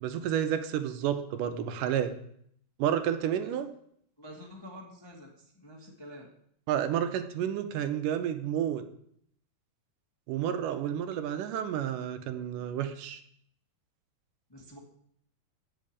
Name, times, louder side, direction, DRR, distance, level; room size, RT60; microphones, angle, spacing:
voice 1, 0.0-2.2 2.8-3.7 6.7-8.8 10.3-13.2, right 9 dB, 80° right, 9 dB, 2.3 m, -30 dB
voice 2, 4.2-6.3 14.5-14.8, equal, 15° left, 0 dB, 1.0 m, -48 dB
9.0 x 6.6 x 8.5 m, 0.68 s
omnidirectional pair, 3.8 m